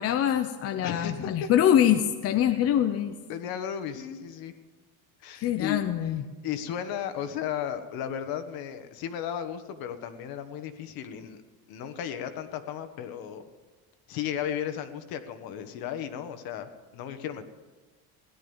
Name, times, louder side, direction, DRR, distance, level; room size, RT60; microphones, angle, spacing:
voice 1, 0.0-3.2 5.4-6.2, left 10 dB, 35° left, 7 dB, 0.7 m, -24 dB
voice 2, 0.8-1.5 3.3-4.5 5.2-5.8 6.4-11.4 11.7-13.4 14.1-17.4, left 9 dB, 60° left, 9 dB, 1.5 m, -34 dB
17.5 x 11.5 x 7.1 m, 1.3 s
cardioid pair, 150°, 40 cm